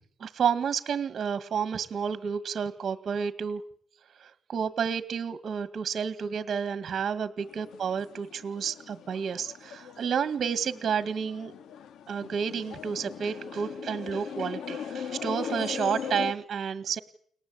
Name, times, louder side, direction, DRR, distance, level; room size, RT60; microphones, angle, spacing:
voice 1, 0.2-3.6 4.2-11.5 12.1-17.0, right 7 dB, 55° right, 12 dB, 1.9 m, -30 dB
sound 1, 7.4-16.3, left 7 dB, 75° left, 1.9 m, -39 dB
29.5 x 19.5 x 8.7 m, 0.64 s
cardioid pair, 90°, 0 cm